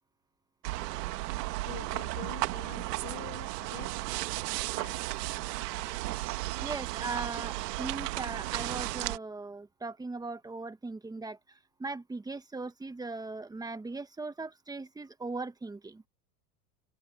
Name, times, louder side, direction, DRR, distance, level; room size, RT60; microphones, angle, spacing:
sound 1, 0.6-9.2, right 19 dB, 75° right, 1.6 m, -34 dB
voice 1, 1.3-4.0 4.7-5.3, left 16 dB, 40° left, 2.9 m, -47 dB
voice 2, 6.6-16.0, right 3 dB, 10° right, 1.2 m, -39 dB
supercardioid pair, 130°, 48 cm